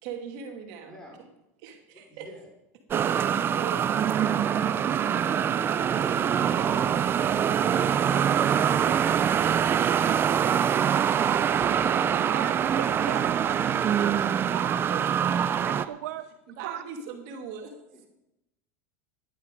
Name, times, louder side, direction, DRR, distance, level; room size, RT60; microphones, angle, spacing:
voice 1, 0.0-0.9 1.2-1.3 1.6-2.3 3.2-5.5 6.5-6.9 13.0-13.2 14.1-14.3 14.9-16.0 16.5-17.8, right 7 dB, 60° right, 3 dB, 2.5 m, -41 dB
voice 2, 0.8-1.2 1.9-2.5 17.9-18.1, equal, 5° left, -1 dB, 5.2 m, -50 dB
sound 1, 2.9-15.9, right 8 dB, 30° right, 0.5 m, -24 dB
voice 3, 12.3-13.5 14.1-14.2 14.5-14.8 15.7-16.2 16.6-16.8, right 12 dB, 85° right, 12 dB, 0.8 m, -36 dB
14.0 x 11.0 x 5.2 m, 0.87 s
supercardioid pair, 125°, 8 cm